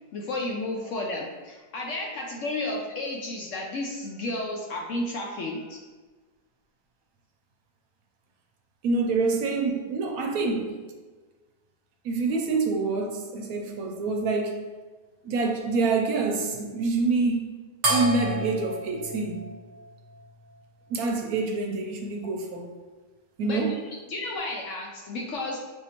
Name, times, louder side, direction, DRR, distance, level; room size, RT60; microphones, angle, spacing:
voice 1, 0.1-5.8 23.4-23.6 24.1-25.7, left 2 dB, 65° left, -1 dB, 0.8 m, -32 dB
voice 2, 8.8-10.8 12.0-14.7 15.2-19.5 20.9-22.7 23.4-23.8, right 3 dB, 70° right, 2 dB, 1.0 m, -26 dB
sound 1, 17.8-20.6, right 1 dB, 45° right, 1.0 m, -31 dB
6.1 x 2.7 x 2.9 m, 1.3 s
omnidirectional pair, 1.7 m